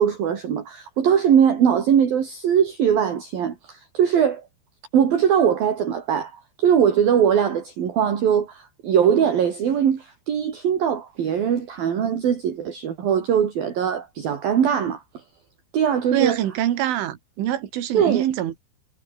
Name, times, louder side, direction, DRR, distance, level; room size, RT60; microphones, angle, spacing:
voice 1, 0.0-4.4 4.9-15.2 15.7-16.4 17.9-18.2, right 8 dB, 50° right, 4.3 m, -21 dB
voice 2, 16.1-18.6, right 12 dB, 75° right, 4.6 m, -24 dB
omnidirectional pair, 5.6 m